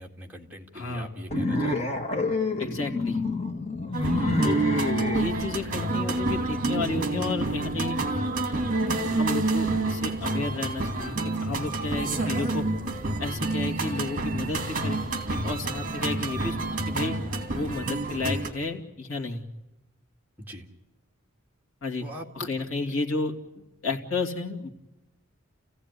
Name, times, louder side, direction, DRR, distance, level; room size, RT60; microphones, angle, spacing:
voice 1, 0.0-1.9 4.2-4.5 16.0-16.3 20.4-20.7 22.0-22.5, equal, 10° right, -1 dB, 2.1 m, -42 dB
voice 2, 0.7-1.1 2.6-3.2 4.4-4.6 5.1-8.0 9.2-11.2 11.4-12.6 13.2-15.0 15.3-16.5 16.9-17.1 17.5-19.4 21.8-22.1 22.4-24.7, left 3 dB, 70° left, 0 dB, 2.7 m, -32 dB
sound 1, 1.3-5.3, left 1 dB, 30° left, 1.8 m, -27 dB
sound 2, 3.9-18.5, right 2 dB, 40° right, 2.6 m, -28 dB
29.5 x 15.5 x 9.7 m, 0.99 s
head